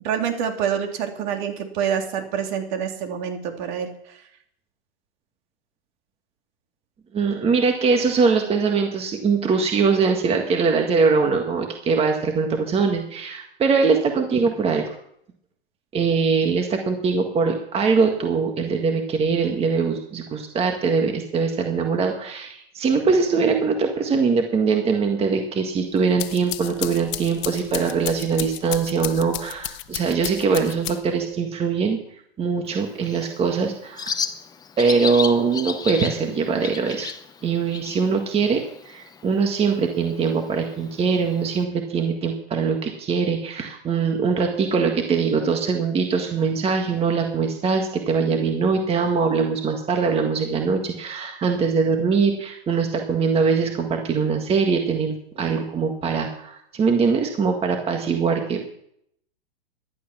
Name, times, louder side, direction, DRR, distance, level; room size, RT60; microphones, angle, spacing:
voice 1, 0.0-4.2, right 8 dB, 50° right, 4 dB, 2.9 m, -27 dB
voice 2, 7.1-14.9 15.9-32.0 32.4-34.1 34.8-37.1 37.4-58.6, right 5 dB, 20° right, 4 dB, 1.7 m, -22 dB
sound 1, 26.0-31.3, left 17 dB, 50° left, 1.0 m, -33 dB
Bird, 32.7-41.6, left 6 dB, 15° left, 0.8 m, -35 dB
15.0 x 11.5 x 6.1 m, 0.71 s
hypercardioid pair, 130°, 30 cm